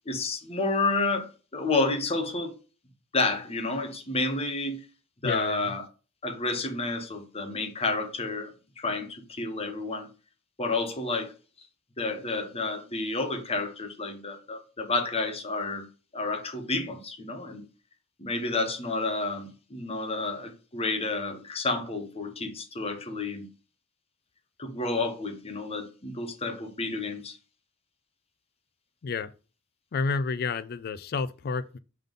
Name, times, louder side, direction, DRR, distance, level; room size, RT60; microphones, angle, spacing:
voice 1, 0.1-2.5 3.1-4.8 5.2-5.8 6.2-10.1 10.6-11.3 12.0-15.9 16.1-17.6 18.2-23.5 24.6-27.4, left 3 dB, 30° left, 1.1 m, -30 dB
voice 2, 5.2-5.7 29.0-29.3 29.9-31.8, left 4 dB, 50° left, 0.4 m, -30 dB
5.6 x 3.7 x 5.3 m
head